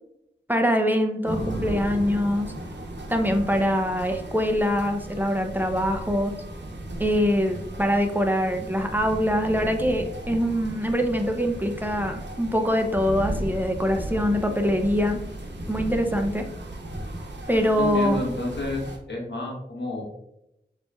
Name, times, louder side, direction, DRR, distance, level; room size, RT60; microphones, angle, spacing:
voice 1, 0.5-2.5 3.1-6.3 7.0-15.2 15.7-16.5 17.5-18.2, equal, 10° right, 4 dB, 0.6 m, -24 dB
sound 1, 1.2-19.0, right 1 dB, 80° right, 0.8 m, -36 dB
voice 2, 17.8-20.0, left 1 dB, 85° left, -2 dB, 1.2 m, -30 dB
6.6 x 3.1 x 2.3 m, 0.83 s
wide cardioid pair, 45°, 18 cm